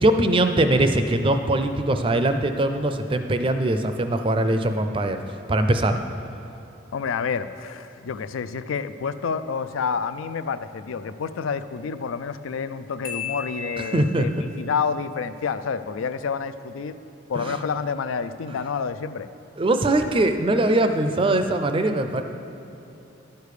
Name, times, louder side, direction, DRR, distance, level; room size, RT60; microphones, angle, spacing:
voice 1, 0.0-5.2 5.5-6.0 13.9-14.3 17.4-17.6 19.6-22.2, right 1 dB, 25° right, 7 dB, 0.4 m, -21 dB
voice 2, 6.9-16.9 17.3-19.3, left 6 dB, 90° left, 12 dB, 0.4 m, -29 dB
Marimba xylophone, 13.0-14.5, left 6 dB, 50° left, 1.0 m, -35 dB
11.5 x 6.7 x 4.9 m, 2.9 s
head